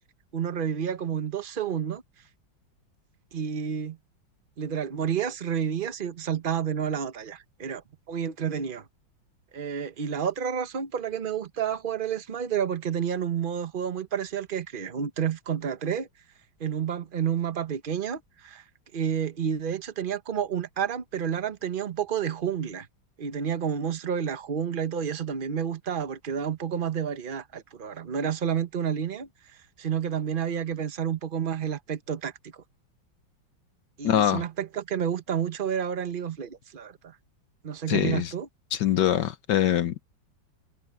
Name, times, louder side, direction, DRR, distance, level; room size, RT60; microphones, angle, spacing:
voice 1, 0.3-2.0 3.3-4.0 4.6-7.8 8.1-8.8 9.5-16.1 16.6-18.6 18.9-22.9 23.2-29.3 29.8-32.3 34.0-37.1 37.6-38.5, right 8 dB, 35° right, 0.9 m, -30 dB
voice 2, 34.0-34.4 37.9-38.3 38.7-40.0, left 11 dB, 65° left, 1.4 m, -23 dB
omnidirectional pair, 2.2 m